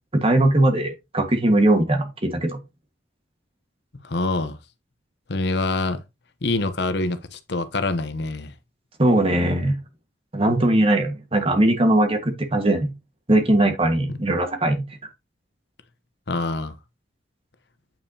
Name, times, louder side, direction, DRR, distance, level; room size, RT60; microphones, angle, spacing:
voice 1, 0.1-2.6 9.0-9.8 10.3-12.9 13.3-14.8, right 1 dB, 30° right, 1.5 m, -20 dB
voice 2, 4.0-4.6 5.3-6.0 6.4-8.5 16.3-16.8, left 2 dB, 65° left, 0.9 m, -25 dB
8.9 x 5.5 x 2.8 m
head